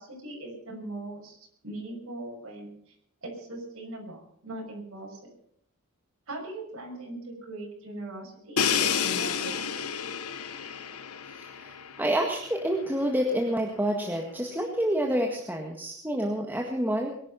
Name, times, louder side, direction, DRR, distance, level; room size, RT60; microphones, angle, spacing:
voice 1, 0.0-1.4 1.6-2.9 3.2-5.3 6.3-9.7, right 1 dB, 60° right, -2 dB, 6.4 m, -40 dB
Crash cymbal, 8.6-12.4, left 7 dB, 80° left, 1.3 m, -30 dB
voice 2, 11.4-11.7 12.0-17.1, right 1 dB, 10° right, 1 dB, 1.8 m, -28 dB
23.0 x 11.0 x 5.7 m, 0.69 s
head